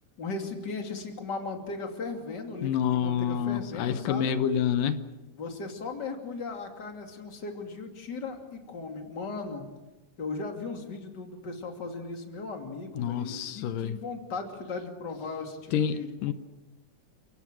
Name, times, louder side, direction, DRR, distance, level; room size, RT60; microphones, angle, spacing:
voice 1, 0.2-4.3 5.4-9.6 10.2-16.3, left 3 dB, 35° left, 4 dB, 3.1 m, -37 dB
voice 2, 2.6-5.1 13.0-14.0 15.7-16.3, left 9 dB, 85° left, 11 dB, 2.7 m, -28 dB
29.0 x 18.5 x 7.8 m, 1.1 s
omnidirectional pair, 3.7 m